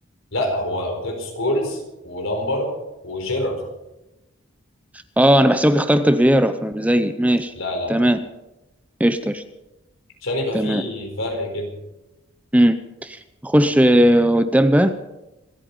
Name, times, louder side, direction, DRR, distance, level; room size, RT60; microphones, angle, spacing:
voice 1, 0.3-2.7 3.0-3.6 7.6-7.9 10.2-11.7, left 1 dB, 75° left, 3 dB, 4.4 m, -26 dB
voice 2, 5.2-7.5 7.9-8.2 9.0-9.4 10.5-10.8 12.5-12.8 13.0-14.9, equal, 5° right, 10 dB, 0.6 m, -17 dB
26.0 x 9.0 x 5.5 m, 0.96 s
head